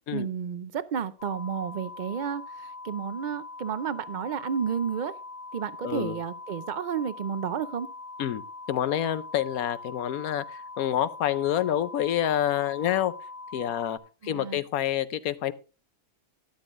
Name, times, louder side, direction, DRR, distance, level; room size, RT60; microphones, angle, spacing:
voice 1, 0.1-5.1 5.5-7.9 14.2-14.6, right 7 dB, 80° right, 14 dB, 0.4 m, -31 dB
sound 1, 1.2-14.0, left 3 dB, 60° left, 1.5 m, -42 dB
voice 2, 5.8-6.2 8.2-8.4 8.7-13.1 13.5-15.5, left 11 dB, 80° left, 14 dB, 1.2 m, -28 dB
13.0 x 11.0 x 2.5 m, 0.34 s
omnidirectional pair, 1.5 m